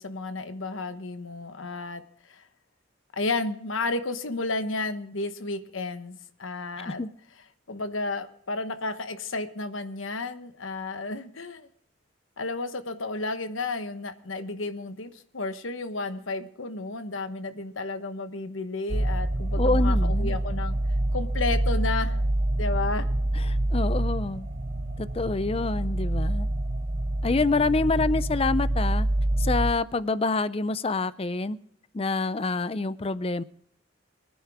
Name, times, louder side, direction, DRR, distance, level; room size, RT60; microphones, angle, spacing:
voice 1, 0.0-2.0 2.3-2.5 3.1-7.0 7.7-11.7 12.4-20.8 21.1-22.2 22.5-23.1, left 3 dB, 80° left, 10 dB, 1.1 m, -32 dB
sound 1, 18.9-29.7, right 1 dB, 35° right, 0.8 m, -26 dB
voice 2, 19.6-20.4 23.3-24.5 25.0-26.5 27.2-29.1 29.4-31.6 31.9-33.4, left 3 dB, 30° left, 17 dB, 0.5 m, -27 dB
24.5 x 10.0 x 3.5 m, 0.65 s
head